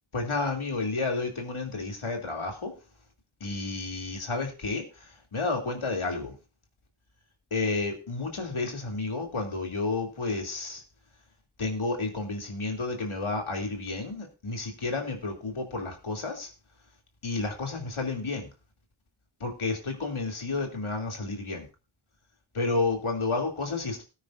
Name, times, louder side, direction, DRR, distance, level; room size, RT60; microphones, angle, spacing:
voice 1, 0.1-2.7 3.4-6.3 7.5-10.8 11.6-16.5 17.2-18.5 19.4-21.7 22.5-24.0, left 3 dB, 80° left, 2 dB, 3.0 m, -31 dB
18.0 x 9.4 x 2.6 m, 0.30 s
wide cardioid pair, 45°, 48 cm